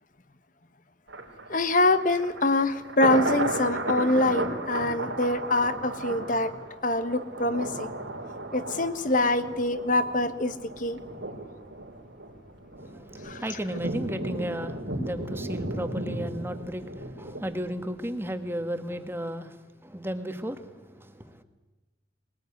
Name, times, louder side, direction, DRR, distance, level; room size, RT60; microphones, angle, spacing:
Thunder, 1.1-18.2 18.6-18.7, right 2 dB, 90° right, 4.2 m, -35 dB
voice 1, 1.5-6.5 6.8-7.9 8.5-11.0 13.2-13.4, left 2 dB, 45° left, 1.3 m, -25 dB
voice 2, 12.8-21.4, equal, 10° right, 1.5 m, -34 dB
21.0 x 20.0 x 9.5 m
head